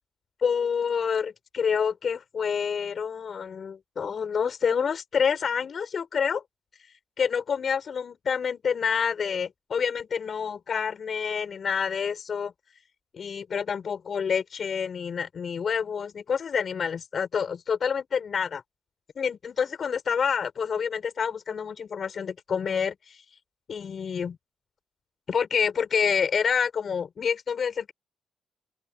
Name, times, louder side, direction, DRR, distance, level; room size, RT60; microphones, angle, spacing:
voice 1, 0.4-6.4 7.2-12.5 13.1-18.6 19.2-23.2 23.7-24.4 25.3-27.9, left 6 dB, 55° left, 6.0 m, -28 dB
open air
cardioid pair, 85°, 0 cm